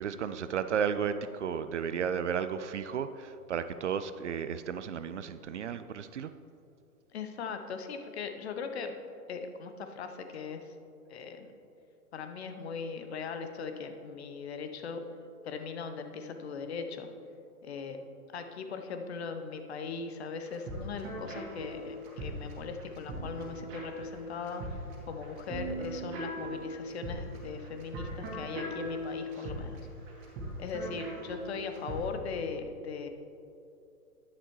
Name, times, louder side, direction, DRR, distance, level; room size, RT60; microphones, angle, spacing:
voice 1, 0.0-6.3 29.4-29.5 30.9-31.0, right 7 dB, 55° right, 12 dB, 0.5 m, -33 dB
voice 2, 7.1-9.0 9.3-10.7 11.1-11.5 12.1-15.0 15.4-17.1 17.6-18.1 18.3-24.8 25.1-29.8 30.6-33.1, left 5 dB, 45° left, 7 dB, 0.8 m, -39 dB
sound 1, 20.4-32.1, right 1 dB, 25° right, 1.8 m, -40 dB
9.9 x 9.8 x 3.1 m, 2.6 s
figure-of-eight pair, 125°, 45 cm